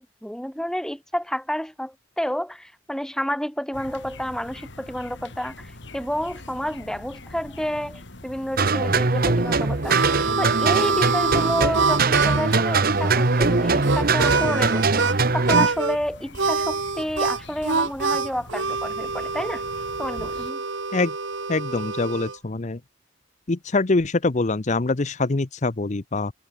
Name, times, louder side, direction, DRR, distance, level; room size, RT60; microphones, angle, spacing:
voice 1, 0.0-10.0 10.4-19.6 20.0-20.6, equal, 5° left, 1.2 m, -30 dB
sound 1, 3.7-20.5, left 2 dB, 65° left, 2.7 m, -43 dB
sound 2, 8.6-15.7, right 3 dB, 50° right, 1.3 m, -21 dB
Harmonica, 9.4-15.2 15.5-16.0 16.3-22.4, right 4 dB, 85° right, 1.9 m, -26 dB
voice 2, 21.5-22.8 23.5-26.3, left 3 dB, 40° left, 0.7 m, -24 dB
head